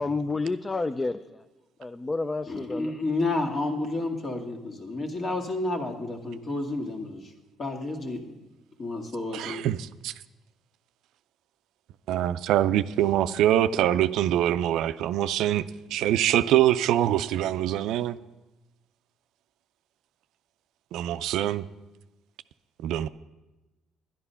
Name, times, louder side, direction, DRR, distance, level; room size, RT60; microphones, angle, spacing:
voice 1, 0.0-1.4 1.8-2.9, left 3 dB, 25° left, 0.5 m, -30 dB
voice 2, 2.5-7.3 7.6-8.4 8.8-9.6, left 2 dB, 45° left, 2.0 m, -30 dB
voice 3, 9.3-10.1 12.1-15.6 15.9-18.2 20.9-21.6 22.8-23.1, right 12 dB, 80° right, 0.4 m, -24 dB
11.0 x 9.9 x 5.6 m
supercardioid pair, 70°, 0 cm